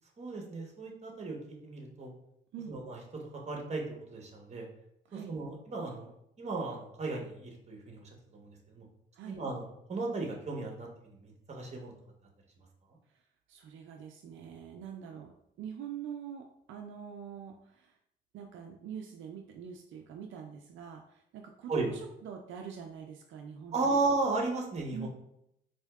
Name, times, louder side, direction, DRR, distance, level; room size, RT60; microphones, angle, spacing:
voice 1, 0.2-2.1 2.7-3.8 4.1-4.7 5.1-6.1 6.4-8.8 9.3-11.9 21.7-21.9 23.7-25.1, right 3 dB, 35° right, 0 dB, 1.0 m, -35 dB
voice 2, 13.5-15.3 15.6-17.9 18.3-24.0 24.9-25.1, right 7 dB, 75° right, 2 dB, 0.4 m, -44 dB
4.3 x 2.8 x 2.3 m, 0.77 s
cardioid pair, 90°, 20 cm